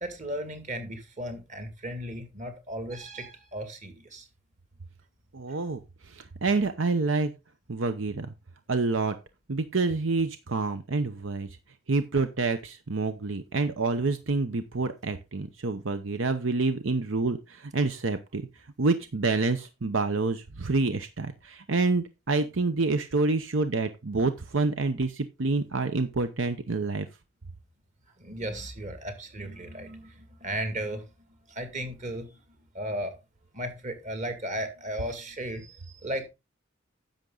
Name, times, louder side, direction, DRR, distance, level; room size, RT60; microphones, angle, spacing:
voice 1, 0.0-4.3 28.2-31.0 31.5-32.3 32.7-33.1 33.5-36.3, right 1 dB, 40° right, 2.3 m, -35 dB
voice 2, 5.3-5.8 6.1-7.3 7.7-8.3 8.7-9.1 9.5-11.5 11.9-18.4 18.8-27.1, right 3 dB, 75° right, 0.8 m, -27 dB
10.5 x 7.3 x 3.9 m
head